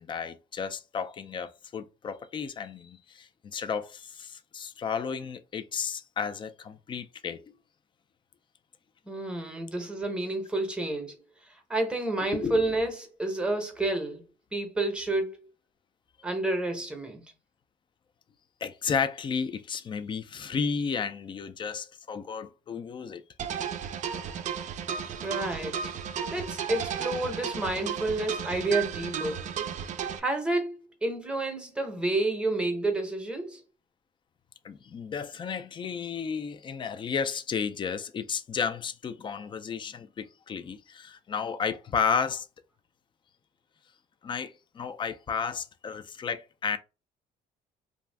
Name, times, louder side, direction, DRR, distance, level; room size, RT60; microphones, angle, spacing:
voice 1, 0.0-7.4 12.3-12.6 18.6-23.2 34.6-42.5 44.2-46.8, left 6 dB, 30° left, 0.4 m, -33 dB
voice 2, 9.1-11.2 11.7-14.2 14.5-15.3 16.2-17.2 25.2-25.9 26.3-29.5 30.2-33.6, right 2 dB, 5° right, 0.8 m, -30 dB
sound 1, 23.4-30.2, right 8 dB, 45° right, 0.4 m, -34 dB
2.5 x 2.3 x 3.3 m
cardioid pair, 110°, 17 cm